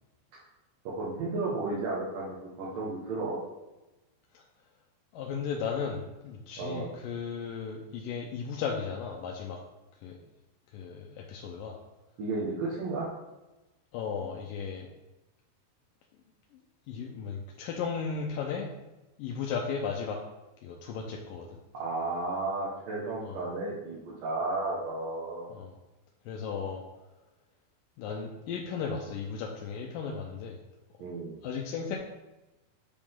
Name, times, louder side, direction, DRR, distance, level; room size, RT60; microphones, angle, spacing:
voice 1, 0.8-3.4 6.6-6.9 12.2-13.1 21.7-25.5 31.0-31.4, right 3 dB, 65° right, -8 dB, 2.8 m, -33 dB
voice 2, 5.1-9.6 10.0-10.2 10.7-11.8 13.9-14.9 16.5-16.6 16.9-18.7 19.2-20.2 20.6-21.6 23.2-23.4 25.5-25.7 26.3-26.8 28.0-30.6 31.4-32.0, left 6 dB, 80° left, -1 dB, 2.0 m, -35 dB
9.5 x 5.1 x 3.6 m, 1.0 s
omnidirectional pair, 4.8 m